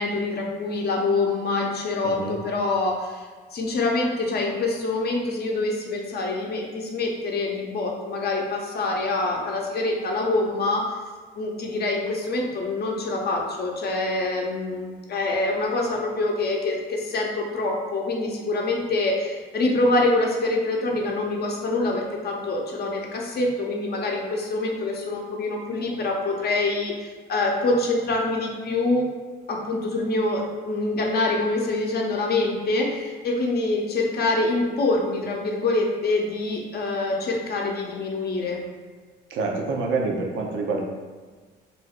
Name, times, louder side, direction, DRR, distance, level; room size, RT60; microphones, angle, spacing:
voice 1, 0.0-11.0 11.3-29.1 29.5-38.6, left 2 dB, 55° left, 0 dB, 0.6 m, -25 dB
voice 2, 2.0-2.4 39.3-40.8, right 3 dB, 80° right, 1 dB, 0.6 m, -27 dB
2.6 x 2.3 x 3.5 m, 1.4 s
cardioid pair, 90°, 20 cm